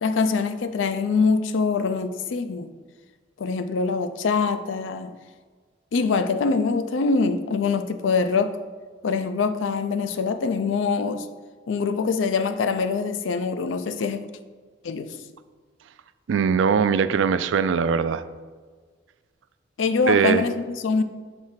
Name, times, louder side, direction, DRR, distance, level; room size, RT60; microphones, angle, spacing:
voice 1, 0.0-2.7 3.4-5.1 5.9-8.6 9.0-11.3 11.7-14.3 14.8-15.2 19.8-21.0, left 4 dB, 85° left, 10 dB, 0.4 m, -24 dB
voice 2, 16.3-18.2 20.1-20.4, right 6 dB, 80° right, 13 dB, 0.3 m, -21 dB
6.2 x 3.2 x 5.6 m, 1.5 s
head